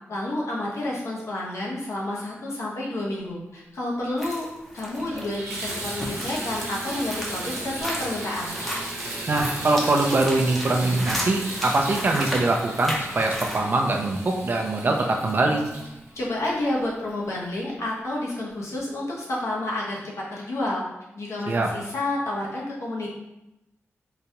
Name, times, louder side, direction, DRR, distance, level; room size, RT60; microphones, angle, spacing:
voice 1, 0.1-8.6 16.1-20.8 21.1-23.1, left 1 dB, 75° left, -4 dB, 0.9 m, -30 dB
sound 1, 4.2-13.6, equal, 5° left, 0.6 m, -34 dB
Water tap faucet / Bathtub (filling or washing), 4.2-4.3 4.8-17.2 17.9-18.0 18.5-18.6, right 2 dB, 85° right, 0.8 m, -36 dB
voice 2, 9.3-15.7 21.5-21.7, right 2 dB, 40° right, 2 dB, 0.4 m, -23 dB
3.9 x 2.3 x 2.8 m, 0.91 s
wide cardioid pair, 175°, 5 cm